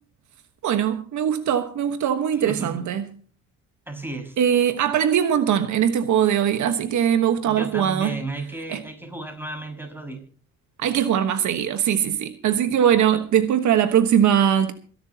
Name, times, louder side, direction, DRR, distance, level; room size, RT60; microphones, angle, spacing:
voice 1, 0.6-3.1 4.4-8.2 8.7-8.8 10.8-14.7, right 9 dB, 75° right, 1.3 m, -21 dB
voice 2, 2.3-2.9 3.9-4.4 7.5-10.2, right 2 dB, 5° right, 5.6 m, -34 dB
26.5 x 11.5 x 2.9 m
cardioid pair, 90°, 30 cm